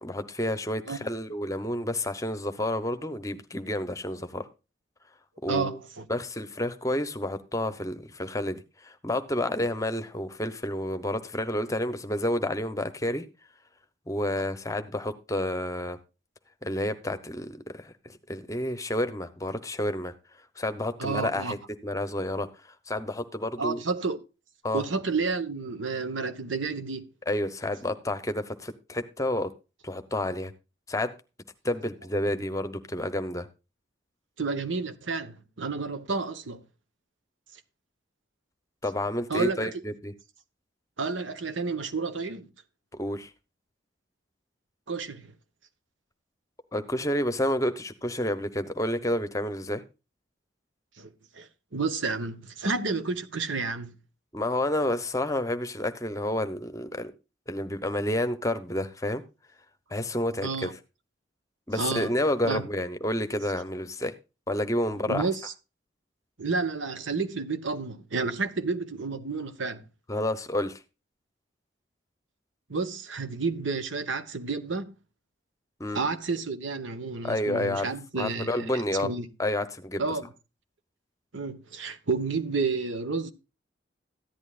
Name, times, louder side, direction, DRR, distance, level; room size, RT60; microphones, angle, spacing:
voice 1, 0.0-4.5 5.4-5.8 6.1-13.2 14.1-16.0 16.6-20.1 20.6-21.6 21.8-22.5 22.9-23.8 24.6-24.8 27.3-29.5 29.8-30.5 30.9-31.1 31.6-33.5 38.8-40.1 43.0-43.3 46.7-49.8 54.3-57.1 57.5-59.2 59.9-60.7 61.7-64.1 64.5-65.3 70.1-70.8 75.8-76.0 77.2-77.9 78.2-79.1 79.4-80.0, left 1 dB, 15° left, 0.8 m, -30 dB
voice 2, 5.5-6.0 21.0-21.5 23.6-24.2 24.7-27.0 34.4-36.6 39.3-39.7 41.0-42.5 44.9-45.3 51.0-53.9 60.4-60.7 61.7-62.1 62.4-62.6 65.1-65.5 66.4-69.8 72.7-75.0 75.9-78.7 79.0-79.3 80.0-80.2 81.3-83.3, right 4 dB, 80° right, 1.2 m, -30 dB
14.5 x 10.5 x 2.5 m
head